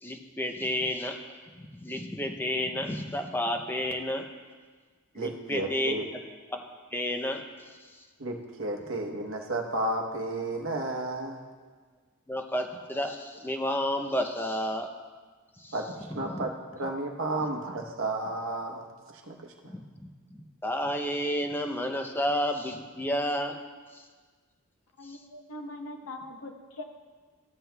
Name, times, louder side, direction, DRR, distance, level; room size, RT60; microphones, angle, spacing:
voice 1, 0.0-1.2 1.6-4.3 5.2-6.2 6.5-8.1 12.3-14.9 15.6-15.8 16.1-16.5 16.8-16.9 19.6-23.6 23.9-24.1 25.0-25.2, left 1 dB, 10° left, 4 dB, 0.5 m, -31 dB
voice 2, 5.1-6.0 8.2-11.4 15.7-16.5 16.8-18.8 19.3-19.4, right 2 dB, 65° right, 1 dB, 0.9 m, -32 dB
voice 3, 25.0-26.8, left 1 dB, 85° left, 4 dB, 0.9 m, -41 dB
13.5 x 7.5 x 2.2 m, 1.5 s
head